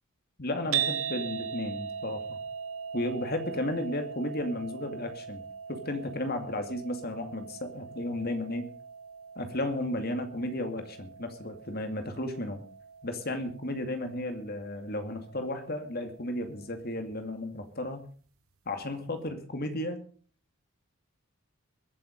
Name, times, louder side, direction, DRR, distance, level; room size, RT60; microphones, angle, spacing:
voice 1, 0.4-2.4 2.9-5.4 5.7-8.6 9.4-12.6 13.0-18.0 18.7-20.0, left 1 dB, 45° left, 7 dB, 2.4 m, -34 dB
sound 1, 0.7-17.0, right 8 dB, 70° right, 1.1 m, -40 dB
22.5 x 7.8 x 5.3 m, 0.43 s
head